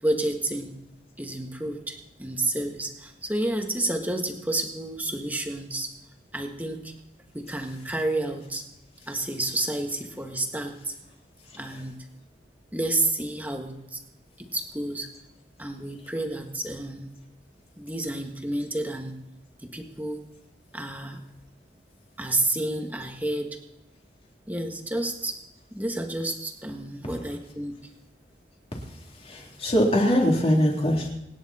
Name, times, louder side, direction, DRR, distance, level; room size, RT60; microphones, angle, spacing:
voice 1, 0.0-0.7 1.2-5.9 6.3-6.9 7.3-8.6 9.1-10.9 11.6-12.0 12.7-14.0 14.4-15.1 15.6-17.1 17.8-19.2 19.6-20.2 20.7-21.2 22.2-23.6 24.5-25.4 25.7-27.8, right 1 dB, 10° right, 4 dB, 1.6 m, -30 dB
voice 2, 29.2-31.1, equal, 35° left, -1 dB, 3.3 m, -22 dB
26.0 x 10.0 x 4.3 m, 0.92 s
head